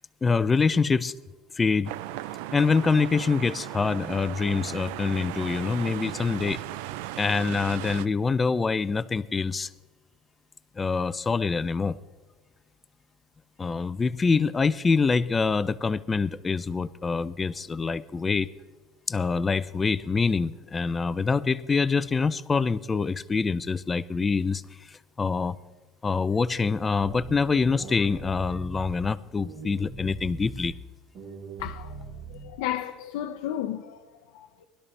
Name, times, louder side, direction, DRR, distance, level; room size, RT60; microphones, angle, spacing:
voice 1, 0.2-1.1 1.6-1.9 2.5-6.6 7.2-9.7 10.8-12.0 13.6-18.5 19.1-24.6 24.9-25.6 26.0-30.7, left 4 dB, 15° left, 0.4 m, -25 dB
sound 1, 1.9-8.1, right 14 dB, 75° right, 0.5 m, -37 dB
sound 2, 27.0-29.0 29.4-30.7 31.1-32.7, right 4 dB, 35° right, 2.1 m, -41 dB
voice 2, 31.6-34.6, left 11 dB, 80° left, 0.7 m, -34 dB
20.0 x 12.5 x 3.3 m
cardioid pair, 165°, 0 cm